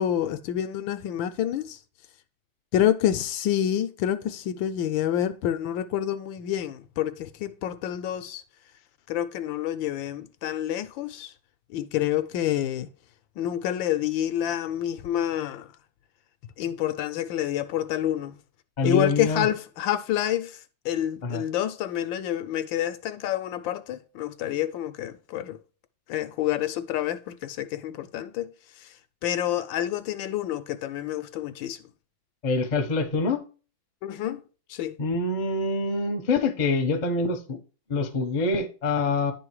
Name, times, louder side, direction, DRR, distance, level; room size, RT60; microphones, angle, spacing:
voice 1, 0.0-1.8 2.7-8.4 9.1-11.3 11.7-12.9 13.4-15.7 16.6-18.4 18.8-20.6 20.8-25.6 26.1-28.5 28.8-28.9 29.2-31.8 34.0-34.4 34.7-35.0, left 11 dB, 75° left, 1.3 m, -28 dB
voice 2, 18.8-19.5 21.2-21.4 32.4-33.4 35.0-37.6 37.9-39.3, left 3 dB, 35° left, 0.7 m, -25 dB
10.5 x 3.8 x 4.6 m
omnidirectional pair, 2.2 m